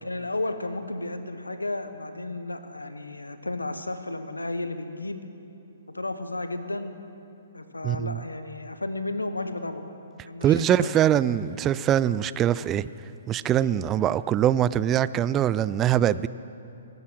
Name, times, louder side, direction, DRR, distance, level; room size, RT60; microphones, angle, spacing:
voice 1, 0.0-5.2 5.9-6.9 7.5-9.8 10.2-10.9, left 2 dB, 90° left, 10 dB, 1.0 m, -33 dB
voice 2, 7.8-8.2 10.4-12.9 13.3-16.3, right 10 dB, 20° right, 17 dB, 0.3 m, -23 dB
18.5 x 9.5 x 6.2 m, 2.7 s
figure-of-eight pair, 125°, 0 cm